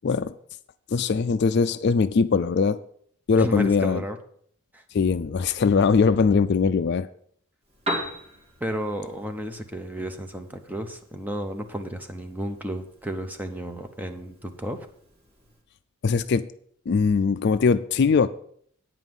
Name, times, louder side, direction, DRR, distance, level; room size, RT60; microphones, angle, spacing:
voice 1, 0.0-0.3 0.9-2.8 3.3-4.0 4.9-7.1 16.0-16.5 16.9-18.3, left 5 dB, 50° left, 0.3 m, -21 dB
voice 2, 3.4-4.2 4.7-4.8 8.6-14.9, right 1 dB, 10° right, 0.8 m, -32 dB
Piano, 7.6-15.6, equal, 30° right, 2.4 m, -40 dB
9.0 x 5.5 x 7.8 m
head